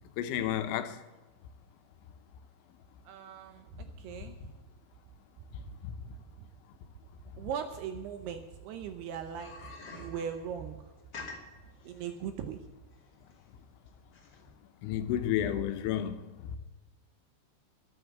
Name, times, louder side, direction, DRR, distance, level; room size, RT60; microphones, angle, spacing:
voice 1, 0.2-1.0 5.8-5.9 14.8-16.2, left 10 dB, 80° left, 3.2 m, -31 dB
voice 2, 3.1-4.4 7.4-9.6 9.9-10.9 11.8-12.6, right 8 dB, 75° right, 2.5 m, -39 dB
sound 1, 9.4-14.5, left 4 dB, 40° left, 1.7 m, -48 dB
13.0 x 9.8 x 7.9 m
omnidirectional pair, 5.4 m